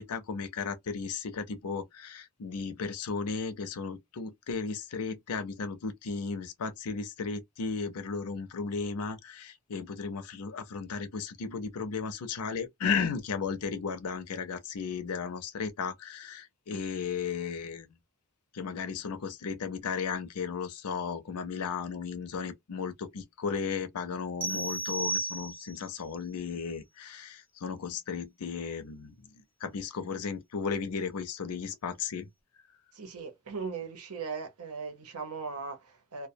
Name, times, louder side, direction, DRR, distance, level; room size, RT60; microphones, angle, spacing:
voice 1, 0.0-17.9 18.5-29.1 29.6-32.3, left 5 dB, 90° left, 0.5 m, -35 dB
sound 1, 24.4-25.9, right 2 dB, 10° right, 0.7 m, -33 dB
voice 2, 32.9-36.3, right 5 dB, 85° right, 0.9 m, -38 dB
2.2 x 2.1 x 2.6 m
head